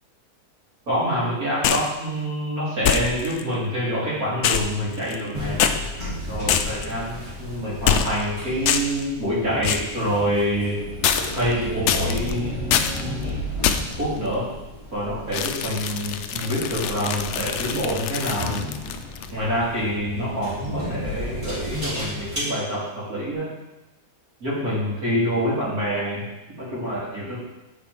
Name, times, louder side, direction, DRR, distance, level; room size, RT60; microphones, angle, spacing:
voice 1, 0.9-5.6 6.3-10.8 11.3-13.3 14.0-14.5 14.9-18.6 19.3-23.5 24.4-26.2 26.6-27.4, equal, 65° right, -9 dB, 3.6 m, -26 dB
sound 1, 1.6-1.9 2.8-3.4 4.4-5.3 5.6-5.8 6.5-6.9 7.8-8.3 8.6-9.0 9.6-9.9 11.0-11.5 11.9-12.3 12.7-13.0 13.6-14.0 15.3-19.3, left 8 dB, 70° left, 0.6 m, -24 dB
sound 2, 5.3-22.4, left 1 dB, 20° right, 2.6 m, -33 dB
7.8 x 4.4 x 5.1 m, 0.99 s
omnidirectional pair, 1.7 m